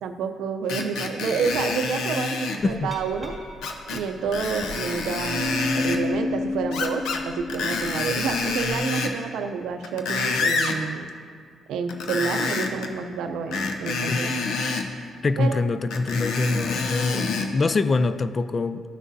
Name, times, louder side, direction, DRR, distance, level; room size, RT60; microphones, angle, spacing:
voice 1, 0.0-3.4 3.9-11.1 11.7-14.3 15.4-15.6, right 5 dB, 80° right, 7 dB, 0.5 m, -29 dB
Screech, 0.7-2.6 3.6-4.0 4.3-6.0 6.7-7.2 7.5-9.2 9.7-10.8 11.9-12.9 13.5-14.9 15.9-17.5 18.1-18.2, left 4 dB, 85° left, 0.6 m, -27 dB
voice 2, 2.6-2.9 14.1-14.2 15.2-18.8, left 3 dB, 35° left, 13 dB, 0.3 m, -24 dB
Glass, 2.7-8.8, left 3 dB, 5° left, 2.0 m, -32 dB
12.5 x 6.2 x 2.7 m, 2.1 s
cardioid pair, 90°, 0 cm